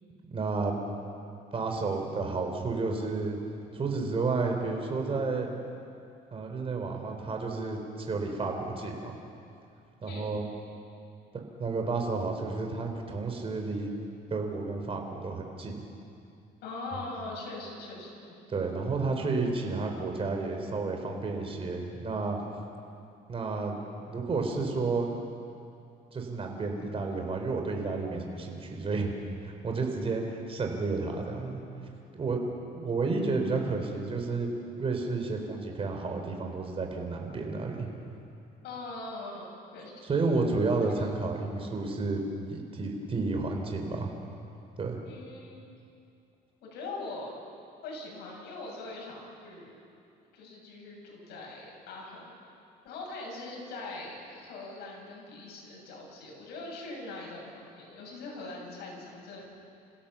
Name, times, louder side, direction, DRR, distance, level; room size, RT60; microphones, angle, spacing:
voice 1, 0.3-0.8 1.5-3.4 3.7-5.5 6.3-7.8 8.1-9.1 10.0-10.5 11.6-13.9 14.3-15.7 18.5-22.4 23.3-23.8 24.1-25.1 26.1-29.1 29.4-30.2 30.5-31.6 32.1-32.4 32.7-34.5 34.8-37.9 40.0-42.2 42.5-44.1 44.8-45.0, right 3 dB, 35° right, 2 dB, 4.0 m, -31 dB
voice 2, 10.0-10.4 16.6-18.1 29.7-29.9 38.6-39.4 39.7-39.9 40.9-41.1 45.0-45.7 46.6-47.3 47.8-49.2 49.4-49.8 50.3-52.4 52.8-59.4, left 2 dB, 80° left, -2 dB, 7.7 m, -41 dB
28.5 x 16.0 x 7.2 m, 2.5 s
cardioid pair, 110°, 17 cm